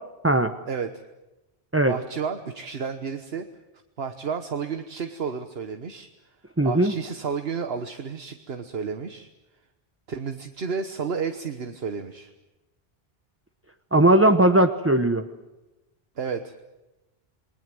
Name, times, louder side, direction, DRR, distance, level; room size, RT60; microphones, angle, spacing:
voice 1, 1.9-3.5 4.0-6.1 6.6-9.3 10.1-12.3 16.2-16.5, right 6 dB, 75° right, 7 dB, 1.4 m, -31 dB
voice 2, 6.6-6.9 13.9-15.2, right 1 dB, 15° right, 6 dB, 0.9 m, -18 dB
28.5 x 21.0 x 7.7 m, 1.0 s
omnidirectional pair, 1.0 m